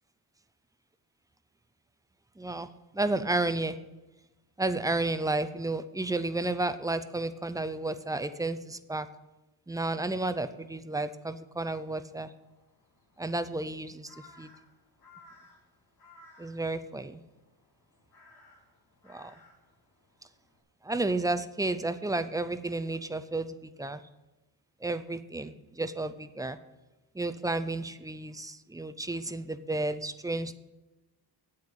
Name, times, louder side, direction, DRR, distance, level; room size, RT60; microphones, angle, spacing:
voice 1, 2.4-2.7 2.9-3.8 4.6-9.1 9.7-12.3 13.2-14.5 16.4-17.2 19.0-19.3 20.8-24.0 24.8-26.6 27.1-30.6, right 2 dB, 10° right, 11 dB, 0.4 m, -32 dB
Crow, 12.1-20.6, left 2 dB, 70° left, 3.6 m, -59 dB
8.6 x 8.0 x 8.5 m, 1.1 s
wide cardioid pair, 150°, 40 cm